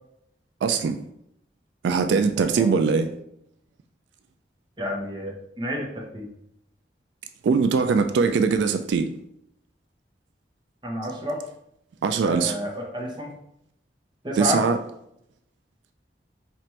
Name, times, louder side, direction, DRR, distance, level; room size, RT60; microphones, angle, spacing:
voice 1, 0.6-1.0 1.8-3.1 7.4-9.1 12.0-12.5 14.4-14.8, right 5 dB, 85° right, 0.3 m, -21 dB
voice 2, 2.4-2.7 4.8-6.3 10.8-11.4 12.2-13.3 14.2-14.6, equal, 25° right, 0.8 m, -30 dB
4.5 x 2.5 x 4.3 m
head